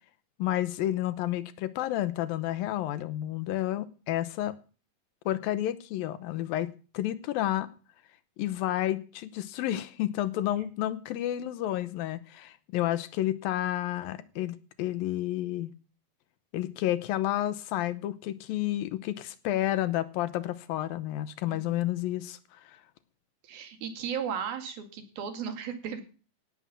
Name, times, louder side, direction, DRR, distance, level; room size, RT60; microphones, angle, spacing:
voice 1, 0.4-4.5 5.3-7.7 8.4-15.7 16.5-22.8, left 13 dB, 80° left, 2.7 m, -30 dB
voice 2, 21.5-21.9 23.4-26.0, right 7 dB, 85° right, 4.0 m, -36 dB
17.0 x 7.6 x 7.1 m
omnidirectional pair, 4.1 m